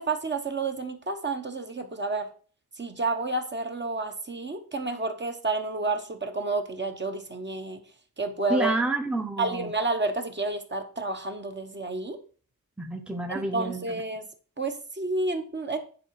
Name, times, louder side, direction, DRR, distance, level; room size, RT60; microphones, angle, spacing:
voice 1, 0.0-2.3 2.8-7.8 8.2-8.7 9.4-12.2 13.3-14.3 14.6-15.8, right 3 dB, 30° right, 5 dB, 1.0 m, -30 dB
voice 2, 8.5-9.7 12.8-14.0, right 2 dB, 5° right, 4 dB, 0.8 m, -29 dB
9.7 x 4.9 x 4.7 m, 0.41 s
wide cardioid pair, 135°, 37 cm